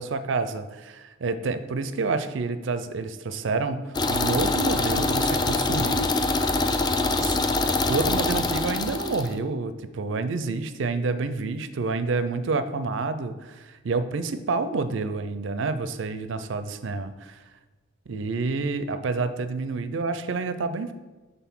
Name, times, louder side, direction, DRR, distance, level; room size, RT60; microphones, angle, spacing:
voice 1, 0.0-6.1 7.2-17.4 18.1-20.9, right 3 dB, 65° right, 11 dB, 0.4 m, -28 dB
sound 1, 3.9-9.3, left 2 dB, 20° left, 0.3 m, -24 dB
5.8 x 3.8 x 6.0 m, 1.2 s
head